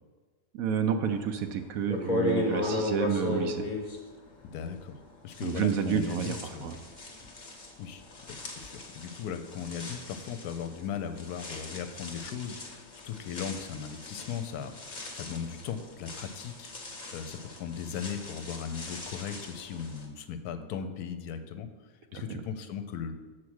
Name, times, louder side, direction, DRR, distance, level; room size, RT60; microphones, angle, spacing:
voice 1, 0.5-3.7 5.4-6.8 22.1-22.4, right 8 dB, 70° right, 7 dB, 1.0 m, -30 dB
sound 1, 1.3-1.4 1.9-5.0 5.3-20.0, left 2 dB, 30° left, 1.0 m, -37 dB
voice 2, 4.4-6.7 7.8-8.0 8.3-23.1, left 7 dB, 75° left, 9 dB, 1.1 m, -38 dB
7.3 x 4.6 x 6.3 m, 1.4 s
omnidirectional pair, 1.7 m